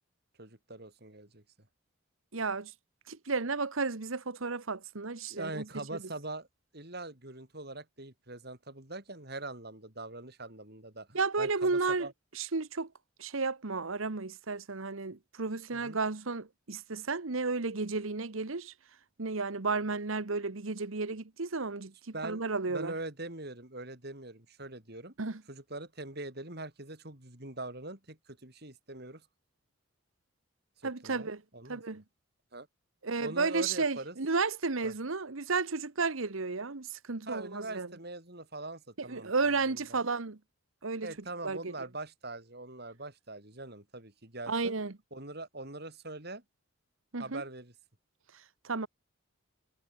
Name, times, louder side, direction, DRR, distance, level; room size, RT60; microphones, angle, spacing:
voice 1, 0.4-1.4 5.3-6.5 6.7-12.1 15.7-16.0 22.1-22.4 22.7-25.1 25.5-29.2 30.8-31.3 31.5-32.0 32.5-32.7 33.2-34.2 34.8-34.9 37.3-40.0 41.0-44.7 45.1-46.4 47.2-47.7, right 2 dB, 50° right, 4.3 m, -42 dB
voice 2, 2.3-2.7 3.1-5.6 11.1-12.1 12.3-12.9 13.2-18.7 19.2-21.9 22.2-22.9 25.2-25.4 30.8-31.4 31.7-32.0 33.0-37.9 39.0-40.4 40.8-41.1 41.4-41.7 44.5-44.9 47.1-47.4 48.6-48.9, right 4 dB, 75° right, 1.2 m, -33 dB
head